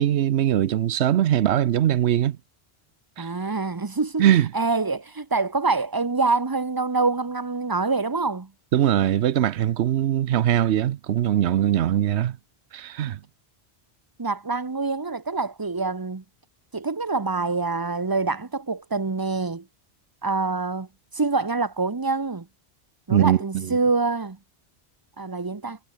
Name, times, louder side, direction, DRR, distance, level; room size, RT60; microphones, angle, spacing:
voice 1, 0.0-2.4 3.2-3.3 4.2-4.5 8.7-12.4 12.7-13.2 23.1-23.7, right 11 dB, 90° right, 1.0 m, -21 dB
voice 2, 3.2-4.3 4.5-8.5 14.2-16.2 16.7-19.7 20.2-20.9 21.1-22.5 23.1-24.4 25.2-25.8, right 3 dB, 25° right, 0.8 m, -25 dB
omnidirectional pair, 1.1 m